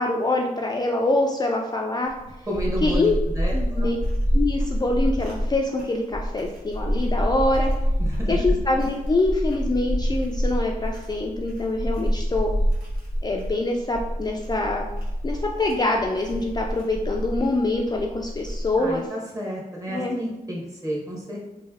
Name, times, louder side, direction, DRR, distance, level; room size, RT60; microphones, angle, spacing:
voice 1, 0.0-2.1 2.8-3.1 3.5-4.0 4.3-7.7 8.3-12.5 13.2-14.9 15.2-19.1 19.9-20.2, left 2 dB, 25° left, 0 dB, 0.3 m, -25 dB
sound 1, 2.1-18.9, equal, 75° right, 1.3 m, -27 dB
voice 2, 2.5-3.9 8.0-8.4 18.8-21.4, equal, 20° right, -3 dB, 1.2 m, -31 dB
3.1 x 2.6 x 3.5 m, 1.0 s
cardioid pair, 70°, 15 cm